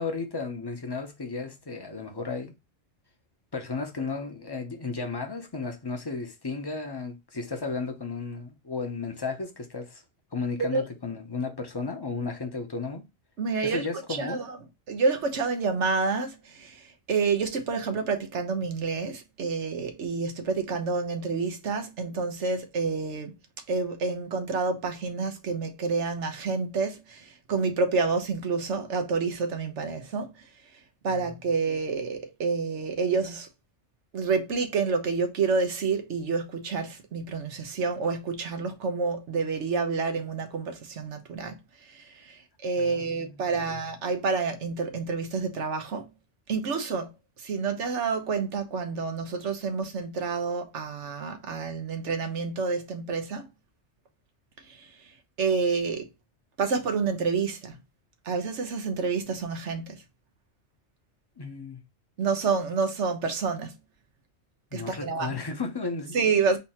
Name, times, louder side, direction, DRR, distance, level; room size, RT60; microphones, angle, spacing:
voice 1, 0.0-2.5 3.5-10.0 10.3-13.0 13.6-14.4 31.1-31.3 42.8-43.7 61.4-61.8 64.7-66.2, left 4 dB, 25° left, 0.8 m, -34 dB
voice 2, 13.4-14.6 14.9-23.3 23.7-30.5 31.0-33.5 34.1-46.1 46.5-47.1 47.4-53.5 54.7-54.9 55.4-56.1 56.6-57.7 58.2-60.0 62.2-63.8 64.7-65.4 66.1-66.6, right 4 dB, 85° right, 1.3 m, -28 dB
4.0 x 2.8 x 4.2 m
omnidirectional pair, 1.2 m